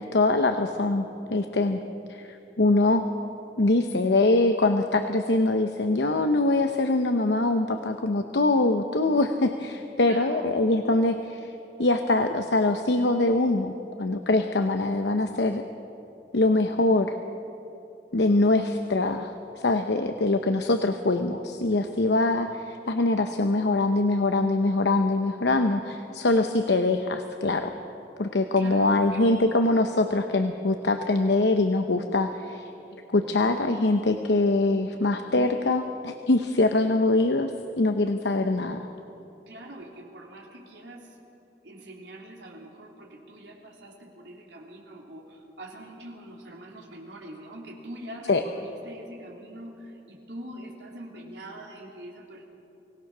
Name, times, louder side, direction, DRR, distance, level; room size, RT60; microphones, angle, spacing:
voice 1, 0.0-1.8 2.1-3.0 3.6-11.5 11.8-13.7 14.0-15.6 16.3-17.2 18.1-19.3 19.6-27.7 28.2-32.7 33.1-38.9 48.3-48.4, left 2 dB, 75° left, 6 dB, 0.8 m, -23 dB
voice 2, 10.0-10.6 28.5-29.2 39.5-41.2 41.6-52.4, right 1 dB, 85° right, -1 dB, 3.4 m, -43 dB
24.0 x 18.0 x 6.2 m, 3.0 s
head